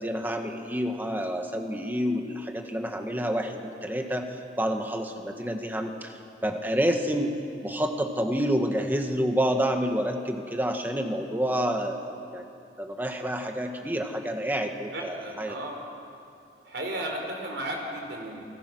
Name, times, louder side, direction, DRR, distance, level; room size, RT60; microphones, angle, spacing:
voice 1, 0.0-7.3 7.6-12.0 12.3-12.4 12.8-15.5, equal, 10° right, 4 dB, 1.7 m, -28 dB
voice 2, 14.9-15.8 16.7-18.5, right 1 dB, 70° right, 1 dB, 4.4 m, -34 dB
29.0 x 21.0 x 6.3 m, 2.6 s
head